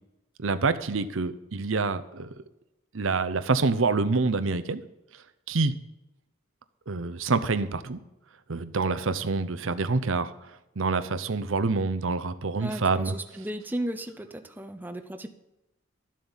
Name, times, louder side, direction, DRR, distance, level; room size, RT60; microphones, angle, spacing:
voice 1, 0.4-2.3 2.9-4.8 5.5-5.7 6.9-8.0 8.5-10.3 10.8-13.1, right 4 dB, 85° right, 11 dB, 0.8 m, -26 dB
voice 2, 12.6-15.3, right 1 dB, 10° right, 7 dB, 0.7 m, -35 dB
12.0 x 7.6 x 7.2 m, 0.94 s
head